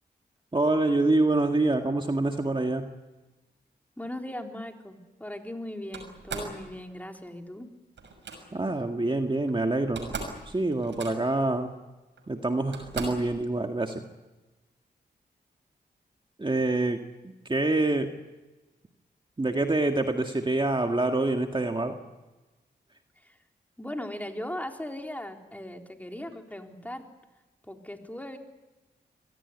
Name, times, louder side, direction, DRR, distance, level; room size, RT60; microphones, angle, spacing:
voice 1, 0.5-2.9 8.5-10.1 10.5-11.7 12.3-14.0 16.4-18.1 19.4-22.0, right 2 dB, 25° right, 4 dB, 1.9 m, -26 dB
voice 2, 4.0-7.7 23.2-23.4 23.8-27.1 27.7-28.4, left 1 dB, 10° left, 3 dB, 3.8 m, -38 dB
Slam, 5.9-6.6 8.0-8.4 9.5-9.6 9.8-10.4 10.7-11.4 12.2-12.3 12.7-13.3, right 4 dB, 80° right, 6.2 m, -38 dB
24.0 x 18.0 x 9.8 m, 1.1 s
cardioid pair, 50°, 19 cm